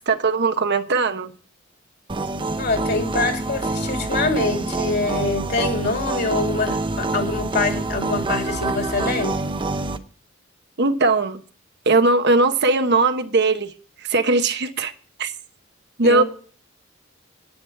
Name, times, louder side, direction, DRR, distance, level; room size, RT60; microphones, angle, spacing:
voice 1, 0.1-1.3 10.8-11.4 11.9-13.7 14.0-14.9 15.2-15.3 16.0-16.2, right 3 dB, 55° right, 9 dB, 1.1 m, -19 dB
sound 1, 2.1-10.0, right 2 dB, 25° right, 0.8 m, -26 dB
voice 2, 2.6-9.4 16.0-16.2, left 3 dB, 50° left, 6 dB, 2.8 m, -25 dB
10.5 x 9.4 x 4.7 m, 0.41 s
head